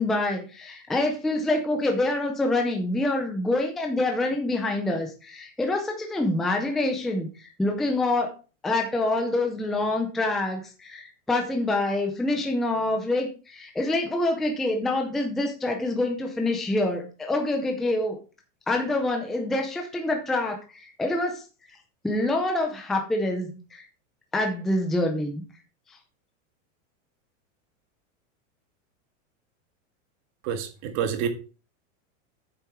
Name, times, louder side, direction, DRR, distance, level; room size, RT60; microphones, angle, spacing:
voice 1, 0.0-8.3 8.6-18.2 18.7-21.4 22.0-23.9 24.3-25.4, left 2 dB, ahead, 0.5 m, -26 dB
voice 2, 30.4-31.3, right 8 dB, 35° right, 1.8 m, -28 dB
8.5 x 6.8 x 4.6 m
supercardioid pair, 175°, 38 cm